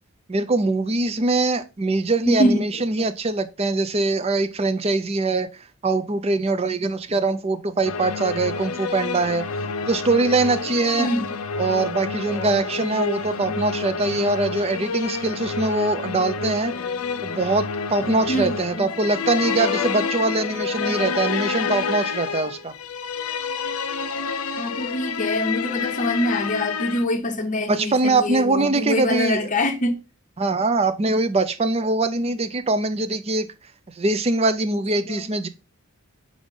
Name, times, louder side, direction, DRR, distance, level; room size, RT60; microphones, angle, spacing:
voice 1, 0.3-5.5 5.8-9.4 9.9-11.1 11.6-16.7 17.2-22.7 27.7-29.5 30.4-33.5 34.0-35.5, right 3 dB, 30° right, 0.5 m, -22 dB
voice 2, 2.3-2.7 3.0-3.1 5.9-6.1 6.5-6.7 7.2-7.4 8.4-9.1 9.5-9.7 10.7-11.3 12.3-13.7 14.2-14.6 15.4-15.5 16.4-17.3 18.0-19.1 19.6-21.1 24.6-30.0 35.1-35.2, left 1 dB, 35° left, 0.9 m, -27 dB
sound 1, 7.8-27.0, left 5 dB, 75° left, 0.6 m, -28 dB
5.4 x 4.9 x 3.7 m
head